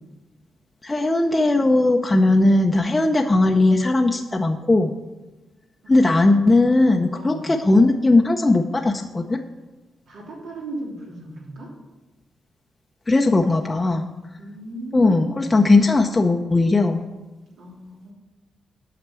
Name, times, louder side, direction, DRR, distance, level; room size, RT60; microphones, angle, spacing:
voice 1, 0.8-4.9 5.9-9.4 13.1-14.1 14.9-17.1, left 2 dB, 20° left, 2 dB, 0.6 m, -18 dB
voice 2, 5.8-6.6 7.1-7.5 10.1-11.7 14.4-15.6 17.6-18.1, right 1 dB, 80° right, -3 dB, 3.3 m, -37 dB
8.8 x 5.9 x 7.5 m, 1.1 s
cardioid pair, 110°, 0 cm